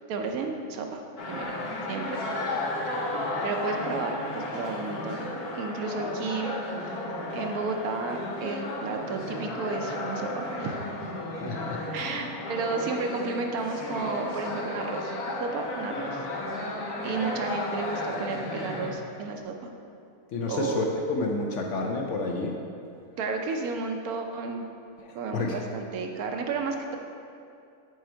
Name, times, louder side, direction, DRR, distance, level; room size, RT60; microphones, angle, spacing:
voice 1, 0.1-1.5 1.9-2.2 3.4-6.6 7.3-10.8 11.9-15.1 15.4-16.2 16.7-16.8 17.0-19.7 20.5-20.9 23.2-24.7 25.1-27.0, right 4 dB, 75° right, 4 dB, 1.1 m, -32 dB
sound 1, 1.2-18.9, left 1 dB, 85° left, 1.4 m, -33 dB
voice 2, 11.4-11.8 20.3-22.6 25.0-25.6, left 3 dB, 65° left, 1 dB, 0.8 m, -30 dB
6.7 x 4.6 x 4.4 m, 2.5 s
omnidirectional pair, 1.6 m